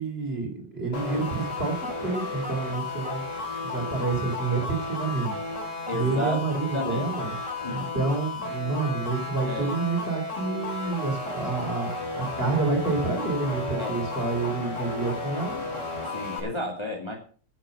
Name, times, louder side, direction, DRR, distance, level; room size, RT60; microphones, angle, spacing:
voice 1, 0.0-3.2 3.6-5.3 5.9-7.4 7.7-11.9 12.2-15.6, right 3 dB, 35° right, 3 dB, 3.6 m, -28 dB
sound 1, 0.9-16.4, left 3 dB, 40° left, 3.5 m, -33 dB
voice 2, 5.9-6.5 6.7-7.1 7.6-7.9 9.4-9.8 13.8-14.0 16.1-17.2, left 1 dB, 15° left, 1 dB, 2.2 m, -32 dB
11.5 x 8.0 x 6.6 m, 0.42 s
omnidirectional pair, 1.9 m